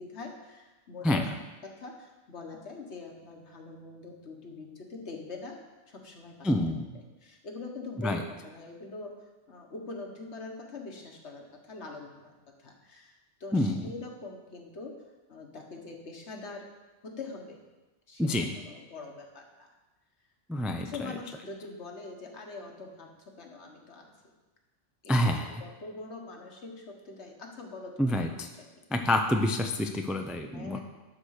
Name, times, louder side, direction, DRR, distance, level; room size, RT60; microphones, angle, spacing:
voice 1, 0.0-1.3 1.6-6.5 7.2-9.1 9.5-12.3 12.6-14.9 15.3-16.7 17.0-17.6 18.1-19.7 20.8-23.1 23.4-24.1 25.0-28.2 28.6-28.7 30.5-30.8, left 3 dB, 65° left, 2 dB, 1.6 m, -43 dB
voice 2, 1.0-1.3 6.4-6.8 8.0-8.2 13.5-13.8 18.2-18.5 20.5-20.9 25.1-25.4 28.0-28.5 28.9-30.8, left 1 dB, ahead, 4 dB, 0.4 m, -27 dB
12.0 x 4.5 x 6.5 m, 1.1 s
omnidirectional pair, 1.2 m